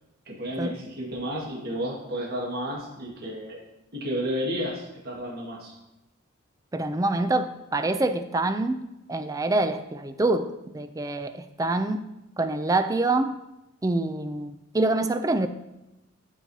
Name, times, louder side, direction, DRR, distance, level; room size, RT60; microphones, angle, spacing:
voice 1, 0.3-3.6 3.9-5.7, equal, 50° right, -3 dB, 1.7 m, -32 dB
voice 2, 6.7-8.8 9.1-12.0 12.4-13.3 13.8-15.5, right 2 dB, 15° right, 10 dB, 0.3 m, -26 dB
12.5 x 4.6 x 2.8 m, 0.95 s
head